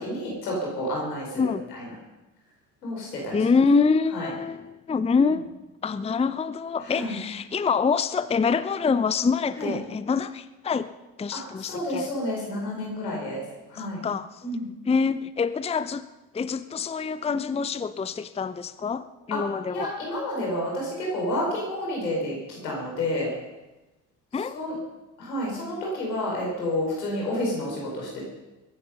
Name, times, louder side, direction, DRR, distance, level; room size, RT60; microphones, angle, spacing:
voice 1, 0.0-1.9 2.8-3.4 4.1-4.3 6.8-7.2 9.6-9.7 11.3-13.4 13.7-14.0 14.4-14.7 19.3-19.4 19.7-23.3 24.5-24.7 25.2-28.2, left 1 dB, 85° left, -2 dB, 4.9 m, -30 dB
voice 2, 3.3-5.5 5.8-10.9 11.2-12.1 13.8-14.4 14.8-16.0 16.3-19.9 24.3-24.7, left 5 dB, 15° left, 14 dB, 0.6 m, -25 dB
22.0 x 10.5 x 5.4 m, 1.1 s
figure-of-eight pair, 50°, 48 cm